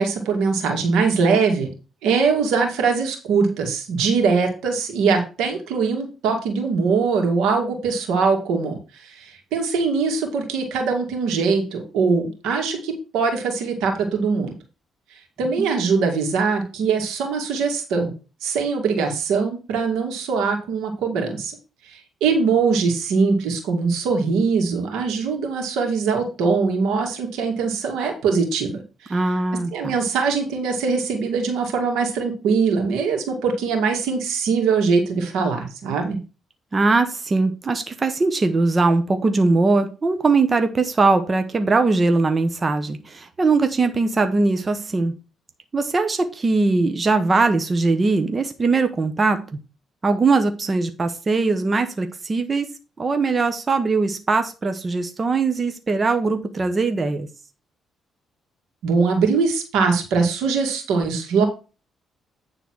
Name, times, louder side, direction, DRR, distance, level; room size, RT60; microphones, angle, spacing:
voice 1, 0.0-1.7 2.0-14.5 15.4-18.1 18.4-21.6 21.9-29.2 29.7-36.2 58.8-61.5, right 5 dB, 90° right, 3 dB, 2.4 m, -22 dB
voice 2, 29.1-29.9 36.7-45.1 45.7-49.4 50.0-52.7 53.0-57.3, right 3 dB, 30° right, 7 dB, 1.0 m, -20 dB
9.4 x 4.0 x 6.2 m, 0.33 s
cardioid pair, 90°, 0 cm